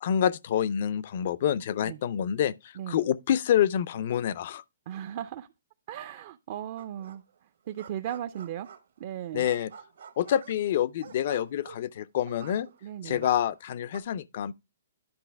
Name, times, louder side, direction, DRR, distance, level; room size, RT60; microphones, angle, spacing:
voice 1, 0.0-4.6 9.3-9.7 10.2-12.7 13.0-14.5, left 10 dB, 50° left, 0.5 m, -27 dB
voice 2, 4.9-5.5 5.9-7.2 7.7-8.7 9.0-9.5 12.8-13.3, right 11 dB, 45° right, 0.5 m, -36 dB
sound 1, 6.8-7.4 7.7-9.0 9.4-12.9 13.2-14.0, right 7 dB, 70° right, 1.3 m, -49 dB
10.5 x 5.4 x 3.4 m
hypercardioid pair, 150°, 0 cm